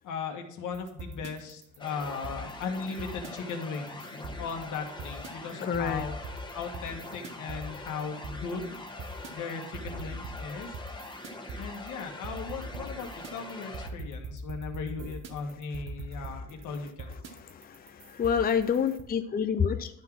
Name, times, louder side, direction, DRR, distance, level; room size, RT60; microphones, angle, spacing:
voice 1, 0.0-6.1 6.5-8.7 9.3-10.8 11.6-17.1, left 5 dB, 80° left, 3 dB, 1.7 m, -37 dB
sound 1, 0.7-19.0, right 2 dB, 60° right, 1.2 m, -42 dB
sound 2, 1.8-13.9, left 2 dB, 15° left, 1.3 m, -43 dB
voice 2, 5.6-6.0 16.3-16.4 17.3-19.9, left 7 dB, 30° left, 9 dB, 0.6 m, -28 dB
11.5 x 4.0 x 6.0 m, 0.74 s
cardioid pair, 90°, 30 cm